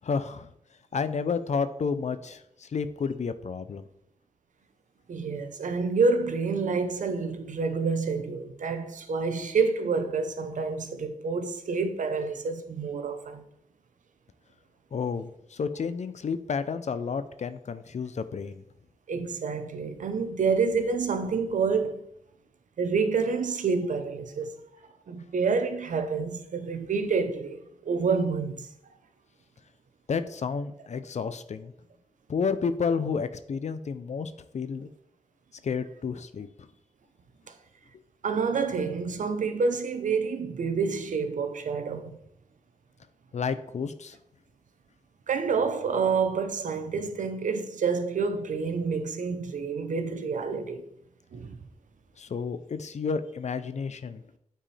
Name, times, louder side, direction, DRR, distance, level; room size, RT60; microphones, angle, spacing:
voice 1, 0.0-0.5 0.9-3.8 14.9-18.6 30.1-31.7 32.3-34.9 35.6-36.5 43.3-44.2 52.2-54.2, left 5 dB, 65° left, 0.6 m, -31 dB
voice 2, 5.1-13.4 19.1-22.0 22.8-24.5 25.1-28.7 37.5-37.6 38.2-42.2 45.3-50.8 51.3-51.6, right 5 dB, 85° right, 0.8 m, -28 dB
8.9 x 4.6 x 3.3 m
wide cardioid pair, 75°, 13 cm